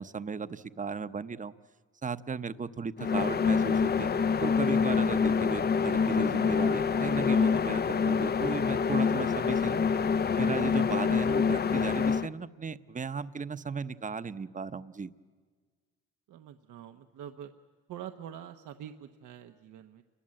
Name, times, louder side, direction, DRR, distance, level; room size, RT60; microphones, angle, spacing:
voice 1, 0.0-1.5 2.0-4.1 4.4-9.8 10.4-15.1, right 5 dB, 25° right, 12 dB, 0.8 m, -36 dB
sound 1, 3.0-12.3, left 6 dB, 35° left, 0.6 m, -26 dB
voice 2, 16.3-17.5 17.9-20.0, right 10 dB, 80° right, 6 dB, 1.0 m, -45 dB
29.0 x 21.5 x 7.7 m, 1.5 s
cardioid pair, 90°, 30 cm